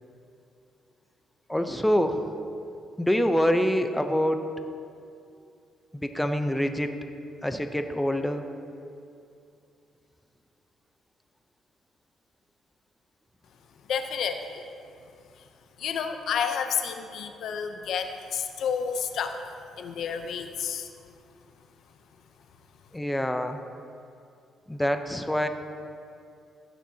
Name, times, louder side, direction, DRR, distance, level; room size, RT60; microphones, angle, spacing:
voice 1, 1.5-2.3 3.0-4.5 5.9-6.9 7.4-8.5 22.9-23.6 24.7-25.5, equal, 5° left, 7 dB, 0.6 m, -25 dB
voice 2, 13.9-14.7 15.8-20.9, left 7 dB, 70° left, 7 dB, 0.7 m, -30 dB
15.0 x 9.1 x 2.8 m, 2.5 s
cardioid pair, 90°, 0 cm